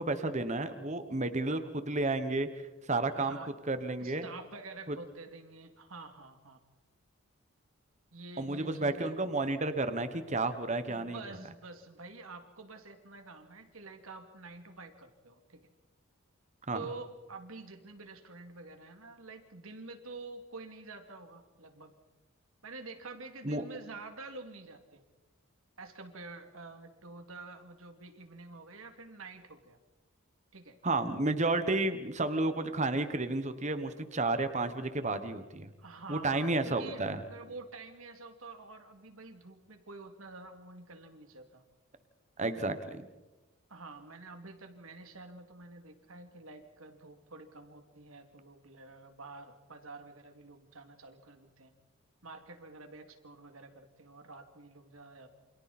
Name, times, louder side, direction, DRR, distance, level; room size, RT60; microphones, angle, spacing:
voice 1, 0.0-2.5 2.9-3.4 3.7-4.3 4.9-5.0 8.4-11.2 16.7-16.9 23.4-23.6 30.8-35.7 36.1-37.2 42.4-43.0, right 2 dB, 35° right, 10 dB, 1.3 m, -31 dB
voice 2, 3.1-3.5 4.0-6.6 8.1-9.1 10.9-15.7 16.7-21.9 22.6-25.0 25.8-29.8 30.5-30.8 35.8-41.6 42.6-42.7 43.7-51.7 52.2-55.3, right 3 dB, 75° right, 6 dB, 2.7 m, -48 dB
29.0 x 26.5 x 4.4 m, 1.1 s
head